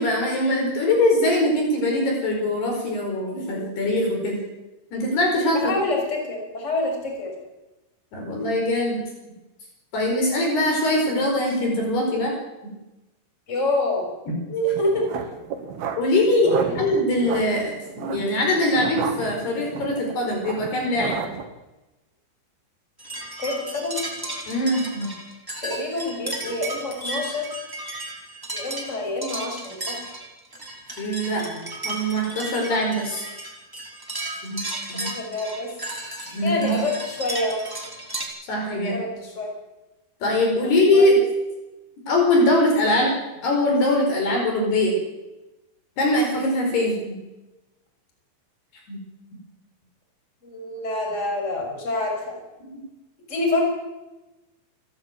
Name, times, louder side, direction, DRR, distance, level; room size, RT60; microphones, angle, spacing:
voice 1, 0.0-4.4 4.9-5.7 8.1-9.0 9.9-12.3 14.3-14.4 16.0-21.2 24.5-25.1 31.0-33.3 34.4-34.6 34.9-35.1 36.3-36.8 38.5-39.0 40.2-41.2 42.1-43.1 43.4-44.9 46.0-47.2 48.9-49.0, left 1 dB, 55° left, 1 dB, 6.7 m, -22 dB
voice 2, 5.7-7.3 13.5-14.1 14.5-15.0 16.4-16.8 23.4-24.0 25.6-27.5 28.5-30.0 35.0-35.7 36.4-37.6 38.9-39.5 40.6-41.2 50.4-52.4 53.3-53.6, left 2 dB, 15° left, 1 dB, 5.9 m, -27 dB
sound 1, 14.7-21.4, right 7 dB, 60° right, 3.5 m, -33 dB
sound 2, 23.0-38.2, right 2 dB, 5° right, 4.1 m, -34 dB
29.5 x 13.0 x 9.3 m, 1.0 s
omnidirectional pair, 5.7 m